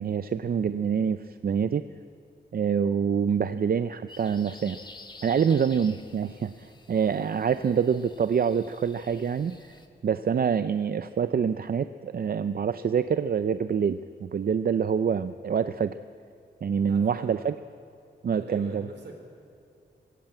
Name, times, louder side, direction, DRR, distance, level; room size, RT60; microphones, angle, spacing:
voice 1, 0.0-1.8 2.5-4.8 5.2-9.7 10.0-15.9 16.6-17.5 18.2-18.9, right 7 dB, 55° right, 12 dB, 0.5 m, -26 dB
sound 1, 4.1-9.9, left 2 dB, 25° left, 1.7 m, -50 dB
voice 2, 16.9-17.3 18.3-19.1, right 3 dB, 75° right, 3 dB, 4.3 m, -43 dB
21.0 x 16.5 x 8.8 m, 2.7 s
wide cardioid pair, 125°, 18 cm